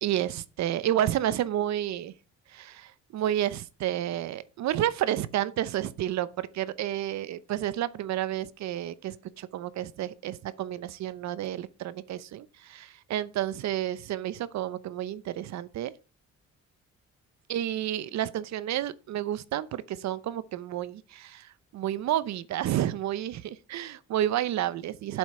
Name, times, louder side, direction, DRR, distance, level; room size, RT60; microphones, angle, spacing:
voice 1, 0.0-2.1 2.5-15.9 17.5-25.2, right 12 dB, 65° right, 0.8 m, -30 dB
8.1 x 7.8 x 5.7 m
cardioid pair, 125°, 30 cm